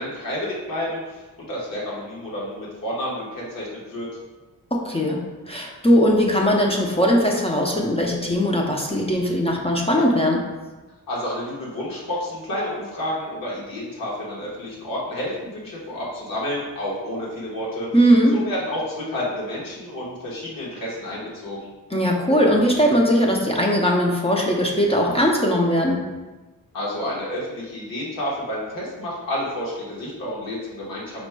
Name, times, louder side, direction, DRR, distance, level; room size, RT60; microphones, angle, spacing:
voice 1, 0.0-4.1 11.1-17.9 18.3-21.7 26.7-31.3, left 1 dB, 65° left, -6 dB, 1.3 m, -30 dB
voice 2, 4.7-10.5 17.9-18.4 21.9-26.1, equal, 15° left, -1 dB, 0.5 m, -19 dB
5.1 x 4.6 x 2.2 m, 1.2 s
wide cardioid pair, 135°, 36 cm